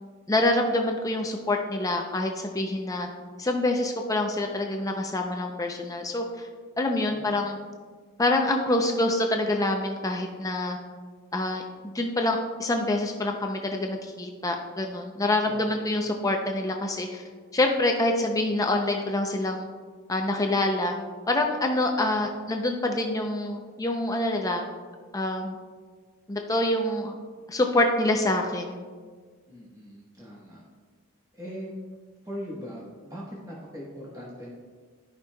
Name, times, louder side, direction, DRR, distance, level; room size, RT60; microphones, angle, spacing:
voice 1, 0.3-3.1 3.4-6.5 6.8-7.6 8.2-10.8 11.3-17.2 17.5-19.7 20.1-20.9 21.3-24.7 25.1-25.6 26.3-27.1 27.5-28.8, left 2 dB, 15° left, 3 dB, 0.4 m, -26 dB
voice 2, 7.0-7.4 15.4-16.1 22.0-22.3 29.5-30.6 31.3-31.7 32.2-34.6, equal, 15° right, -6 dB, 1.2 m, -41 dB
13.0 x 5.4 x 2.2 m, 1.6 s
head